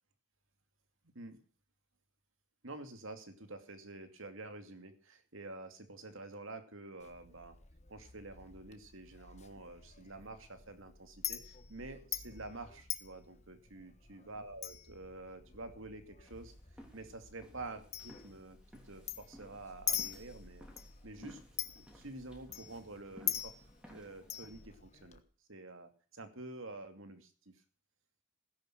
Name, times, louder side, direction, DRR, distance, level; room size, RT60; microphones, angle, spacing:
voice 1, 2.6-7.6 7.9-16.5 16.9-18.6 18.9-20.7 21.0-21.4 21.7-23.5 23.9-25.2 25.5-27.3, right 2 dB, 75° right, 8 dB, 2.5 m, -48 dB
Chink clink, 7.0-25.2, left 10 dB, 30° left, 1.3 m, -45 dB
sound 1, 16.2-24.7, equal, 5° right, 3.3 m, -58 dB
17.5 x 10.5 x 6.3 m, 0.40 s
head